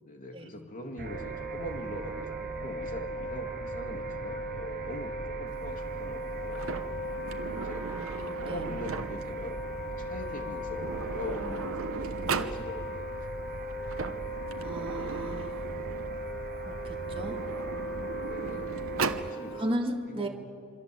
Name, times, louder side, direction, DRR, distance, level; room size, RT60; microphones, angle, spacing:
voice 1, 0.0-6.6 7.4-7.9 8.4-13.6 18.2-18.7 19.2-19.6 20.0-20.3, left 1 dB, 40° left, 4 dB, 2.4 m, -42 dB
Wind instrument woodwind instrument, 1.0-19.7, right 1 dB, 75° left, 5.2 m, -38 dB
sound 1, 1.0-19.3, right 3 dB, 45° right, 0.7 m, -42 dB
Sliding door, 6.5-9.4 10.4-10.5 10.7-12.6 13.7-16.2 17.0-19.3, right 4 dB, 70° right, 1.1 m, -37 dB
voice 2, 7.8-8.7 14.6-15.7 16.6-17.4 18.4-19.0 19.6-20.3, equal, 25° right, 2 dB, 2.1 m, -36 dB
27.0 x 24.5 x 7.8 m, 2.3 s
head